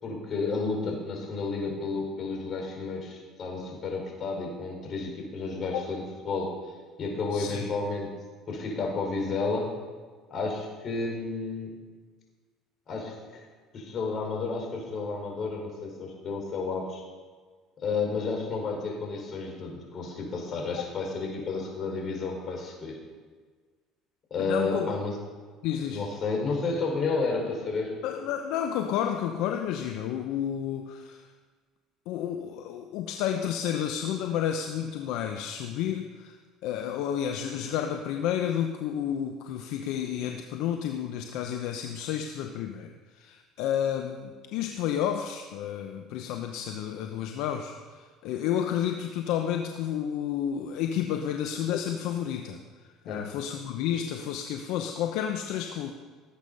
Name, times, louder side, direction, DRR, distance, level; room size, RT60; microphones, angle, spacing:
voice 1, 0.0-6.5 7.0-8.1 8.5-9.7 10.3-11.7 12.9-13.4 13.7-17.0 17.8-23.0 24.3-25.1 25.8-28.0 53.1-53.2, left 4 dB, 45° left, 0 dB, 4.9 m, -31 dB
voice 2, 7.3-7.7 24.4-24.9 25.6-26.0 28.0-31.3 32.1-36.4 36.6-52.6 53.0-55.9, left 9 dB, 75° left, 5 dB, 0.8 m, -31 dB
18.5 x 8.3 x 5.5 m, 1.5 s
supercardioid pair, 90°, 0 cm